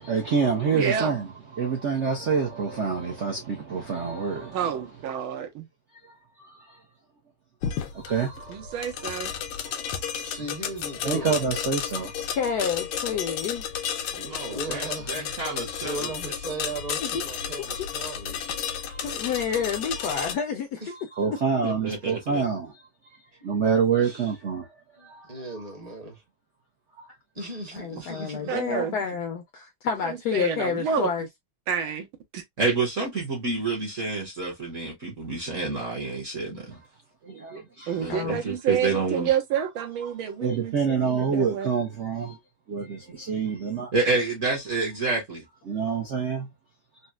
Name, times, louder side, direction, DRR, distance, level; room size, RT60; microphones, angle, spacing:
voice 1, 0.1-5.1 6.0-6.1 6.4-6.8 7.9-9.0 9.3-10.5 11.0-12.1 18.8-19.2 20.0-20.1 20.9-22.7 23.4-24.7 25.0-25.8 27.0-27.1 27.4-27.5 28.1-28.3 37.2-38.5 38.9-39.0 40.4-42.4 42.7-43.9 45.6-46.5, right 6 dB, 70° right, 0.6 m, -28 dB
voice 2, 0.7-1.1 4.5-5.7 8.5-9.3 28.5-29.0 30.1-31.1 31.7-32.1 32.3-32.4 37.9-41.7, right 8 dB, 90° right, 1.7 m, -29 dB
sound 1, 7.6-20.3, left 8 dB, 90° left, 1.5 m, -32 dB
voice 3, 10.2-11.4 14.0-15.4 15.8-18.6 20.8-20.9 24.0-24.3 25.0-26.1 27.4-28.6, right 2 dB, 30° right, 0.8 m, -37 dB
voice 4, 12.3-13.6 14.6-14.7 17.0-17.2 19.0-20.8 27.7-31.3 36.5-36.6 38.1-38.4, left 6 dB, 75° left, 0.9 m, -29 dB
voice 5, 14.2-16.1 21.6-22.4 32.6-36.8 38.0-39.3 43.9-45.4, right 3 dB, 50° right, 1.1 m, -28 dB
4.1 x 2.1 x 2.2 m
omnidirectional pair, 2.2 m